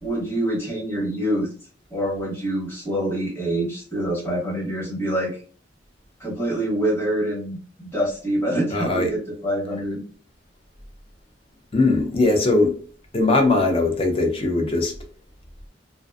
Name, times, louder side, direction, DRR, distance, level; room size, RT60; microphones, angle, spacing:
voice 1, 0.0-1.5 1.9-5.4 6.2-10.0, right 1 dB, 15° left, 1.0 m, -26 dB
voice 2, 8.7-9.1 11.7-12.8 13.1-14.9, left 2 dB, 30° left, 0.5 m, -20 dB
2.5 x 2.2 x 2.3 m
head